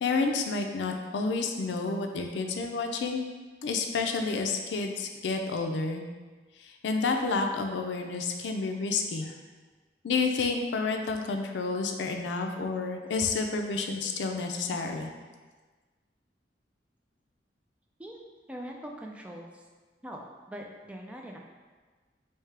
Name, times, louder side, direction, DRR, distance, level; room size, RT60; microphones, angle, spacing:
voice 1, 0.0-3.3 3.6-6.0 6.8-9.4 10.0-15.1, left 4 dB, 85° left, 4 dB, 0.4 m, -30 dB
voice 2, 18.5-19.6 20.0-20.2 20.5-21.4, equal, 5° right, 0 dB, 0.3 m, -42 dB
3.4 x 2.7 x 3.3 m, 1.4 s
head